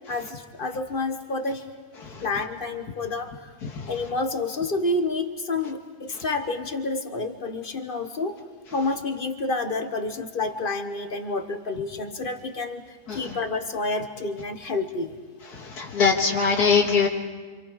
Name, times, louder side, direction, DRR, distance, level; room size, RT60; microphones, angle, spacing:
voice 1, 0.1-1.7 2.2-3.5 3.9-8.4 8.7-15.2, left 3 dB, 40° left, 7 dB, 1.3 m, -29 dB
voice 2, 15.5-17.1, left 5 dB, 85° left, 1 dB, 2.2 m, -21 dB
27.5 x 27.0 x 4.9 m, 1.4 s
omnidirectional pair, 1.6 m